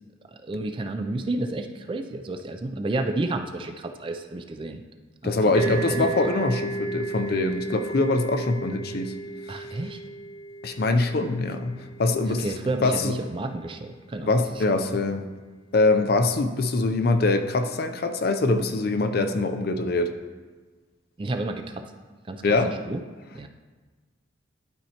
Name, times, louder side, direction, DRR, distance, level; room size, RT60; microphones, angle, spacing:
voice 1, 0.4-4.8 5.2-6.3 9.5-10.0 12.3-14.6 21.2-21.9 22.3-22.4 22.9-23.0 23.3-23.5, right 2 dB, 25° right, 6 dB, 0.3 m, -31 dB
voice 2, 5.2-9.1 10.6-12.5 12.8-13.2 14.2-15.3 15.7-20.1 22.4-22.7, left 2 dB, 50° left, 7 dB, 0.4 m, -23 dB
sound 1, 5.5-13.1, right 3 dB, 75° left, 1.4 m, -35 dB
11.5 x 4.4 x 2.9 m, 1.4 s
head